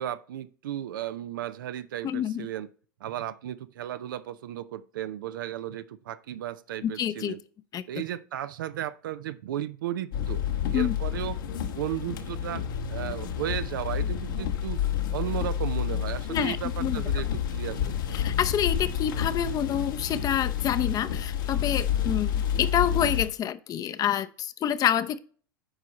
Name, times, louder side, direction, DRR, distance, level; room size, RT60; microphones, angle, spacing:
voice 1, 0.0-2.7 3.0-7.4 7.9-10.4 10.7-11.4 11.6-14.9 15.1-18.3, right 12 dB, 75° right, 0.6 m, -35 dB
voice 2, 2.0-2.5 6.8-7.3 7.7-7.8 10.7-10.9 16.3-17.0 18.1-25.2, left 10 dB, 35° left, 0.7 m, -27 dB
sound 1, 10.1-23.3, left 9 dB, 75° left, 1.4 m, -29 dB
8.9 x 4.9 x 4.1 m
hypercardioid pair, 100°, 11 cm